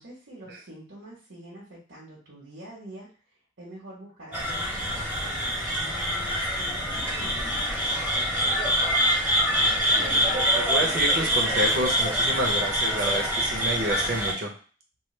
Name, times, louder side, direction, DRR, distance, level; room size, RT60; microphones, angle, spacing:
voice 1, 0.0-3.1 3.6-8.9, right 1 dB, 75° right, -5 dB, 1.1 m, -46 dB
sound 1, 4.3-14.3, equal, 10° right, 0.7 m, -25 dB
voice 2, 9.5-14.6, right 1 dB, 60° right, 0 dB, 0.8 m, -29 dB
3.2 x 2.1 x 3.2 m, 0.37 s
head